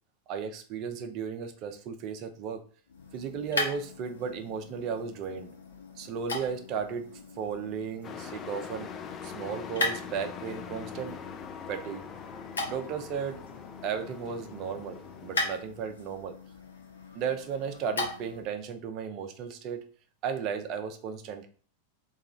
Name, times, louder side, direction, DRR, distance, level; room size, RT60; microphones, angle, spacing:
voice 1, 0.3-2.6 3.1-5.5 6.0-7.1 7.4-8.9 9.2-11.2 11.7-12.0 12.7-13.4 13.8-16.4 17.1-19.8 20.2-21.5, right 6 dB, 40° right, 6 dB, 0.5 m, -35 dB
sound 1, 2.9-18.5, left 2 dB, 70° left, 0.9 m, -39 dB
Truck, 8.0-15.5, left 7 dB, 25° left, 0.4 m, -43 dB
2.9 x 2.3 x 3.8 m, 0.42 s
figure-of-eight pair, 90°, 0 cm